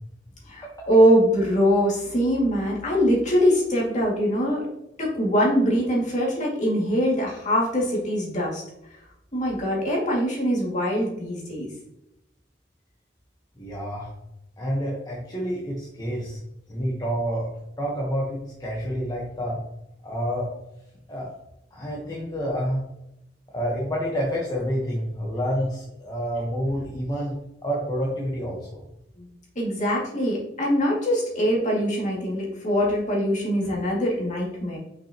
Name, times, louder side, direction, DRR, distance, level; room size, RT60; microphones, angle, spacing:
voice 1, 0.5-4.6 5.0-8.6 9.3-11.7 29.2-29.3 29.6-34.8, equal, 40° left, -3 dB, 2.2 m, -23 dB
voice 2, 13.6-14.1 14.6-16.4 16.7-17.5 17.8-19.6 20.0-20.5 21.1-21.3 21.7-22.8 23.5-27.3 27.6-28.8, equal, 20° left, -5 dB, 1.1 m, -28 dB
5.9 x 5.7 x 2.9 m, 0.85 s
head